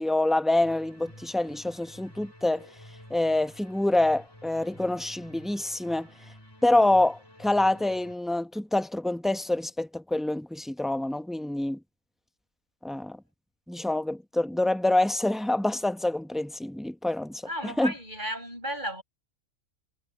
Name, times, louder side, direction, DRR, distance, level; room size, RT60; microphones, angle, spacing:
voice 1, 0.0-2.7 3.1-6.1 6.6-11.8 12.8-13.2 13.7-17.9, left 2 dB, ahead, 0.6 m, -26 dB
sound 1, 0.6-8.2, equal, 20° left, 4.5 m, -51 dB
voice 2, 17.4-19.0, equal, 35° right, 8.0 m, -34 dB
omnidirectional pair, 1.3 m